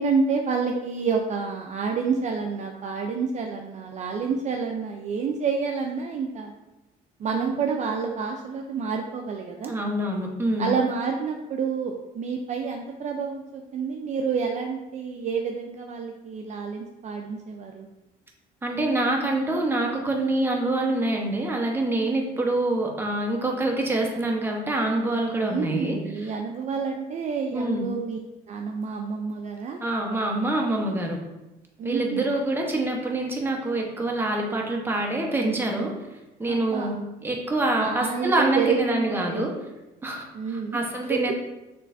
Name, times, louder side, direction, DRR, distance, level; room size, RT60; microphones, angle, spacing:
voice 1, 0.0-6.5 7.2-9.7 10.6-17.9 25.4-28.2 28.5-29.8 31.8-32.3 36.5-37.0 37.8-39.4 40.3-40.8 41.1-41.3, right 5 dB, 45° right, 2 dB, 0.4 m, -28 dB
voice 2, 9.7-10.7 18.6-26.3 27.5-27.9 29.8-31.2 31.8-35.9 36.4-37.0 37.2-39.5 40.0-41.3, right 2 dB, 15° right, 0 dB, 0.9 m, -26 dB
6.6 x 3.1 x 2.6 m, 0.99 s
cardioid pair, 110°, 17 cm